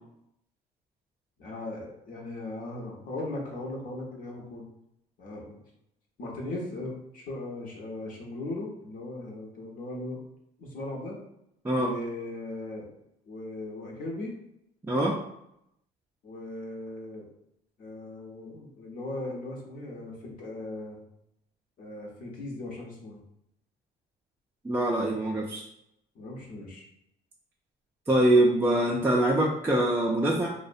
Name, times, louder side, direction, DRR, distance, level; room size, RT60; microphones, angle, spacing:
voice 1, 1.4-4.7 5.2-5.6 6.2-10.2 10.6-11.2 11.8-12.9 13.3-14.4 16.2-17.3 17.8-21.0 21.8-23.2 26.1-26.9, left 2 dB, 55° left, -1 dB, 0.7 m, -38 dB
voice 2, 14.9-15.2 24.6-25.7 28.1-30.5, right 1 dB, 15° right, -3 dB, 0.3 m, -24 dB
2.5 x 2.0 x 2.5 m, 0.79 s
cardioid pair, 110°, 17 cm